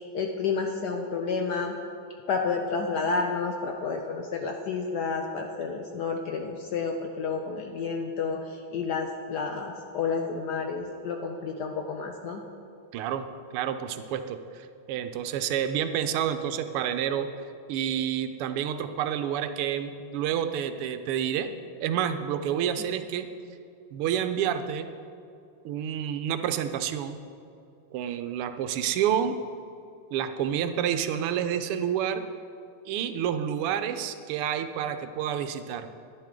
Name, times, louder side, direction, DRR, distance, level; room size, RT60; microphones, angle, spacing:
voice 1, 0.0-1.8 2.3-12.4, left 4 dB, 70° left, 3 dB, 1.0 m, -30 dB
voice 2, 12.9-13.3 13.5-17.3 17.7-21.5 21.8-23.3 23.9-24.9 25.6-27.2 27.9-29.3 30.1-32.2 32.9-35.9, right 9 dB, 90° right, 9 dB, 1.6 m, -29 dB
11.0 x 10.5 x 3.7 m, 2.5 s
omnidirectional pair, 2.4 m